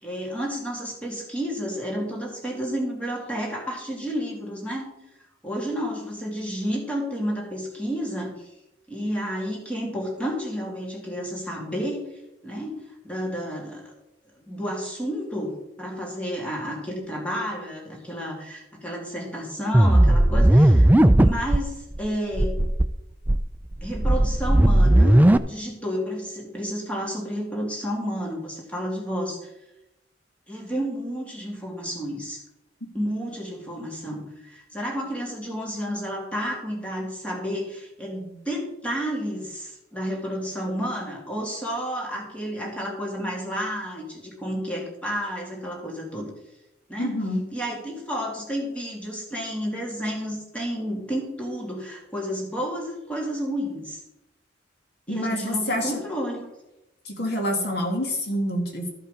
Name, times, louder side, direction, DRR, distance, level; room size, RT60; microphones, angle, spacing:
voice 1, 0.0-4.9 5.4-8.5 8.9-12.0 12.4-12.8 13.0-13.9 14.4-20.9 21.1-22.6 23.8-29.5 30.5-32.4 32.9-46.3 46.9-47.1 47.5-54.0 55.1-56.5, equal, 5° left, -2 dB, 2.4 m, -31 dB
sound 1, 19.7-21.6 22.0-22.1 22.3-22.9 23.3-25.4, right 1 dB, 10° right, 0.3 m, -16 dB
voice 2, 47.0-47.4 55.1-56.0 57.0-58.9, left 1 dB, 60° left, 2 dB, 1.7 m, -27 dB
13.5 x 5.5 x 5.1 m, 0.90 s
head